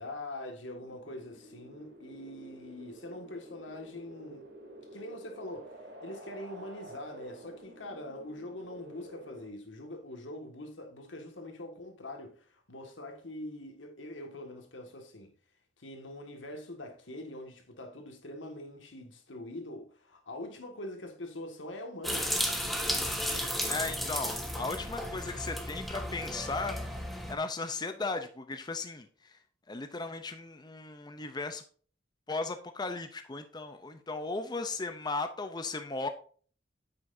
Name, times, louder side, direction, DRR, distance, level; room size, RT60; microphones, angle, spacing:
voice 1, 0.0-4.5 4.9-15.3 15.8-22.4, left 1 dB, 80° left, 1.9 m, -43 dB
sound 1, 0.7-9.5, right 1 dB, 80° right, 3.0 m, -50 dB
sound 2, 22.0-27.3, equal, ahead, 1.3 m, -34 dB
voice 2, 23.6-27.0 27.3-29.4 29.7-31.6 32.3-36.1, left 3 dB, 20° left, 0.6 m, -36 dB
9.3 x 7.9 x 2.7 m
head